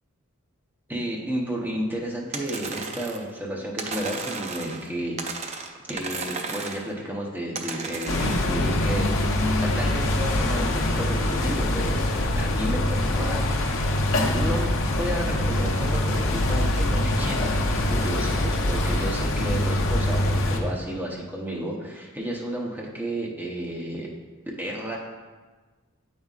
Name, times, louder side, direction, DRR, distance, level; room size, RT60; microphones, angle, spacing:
voice 1, 0.9-13.4 14.3-24.1 24.4-25.0, right 1 dB, 10° right, -3 dB, 0.8 m, -32 dB
sound 1, 2.3-3.3 3.8-4.9 5.2-6.9 7.5-8.5, right 4 dB, 30° right, 0.4 m, -34 dB
sound 2, 8.1-20.6, left 1 dB, 65° left, 0.6 m, -24 dB
8.4 x 5.3 x 2.4 m, 1.3 s
head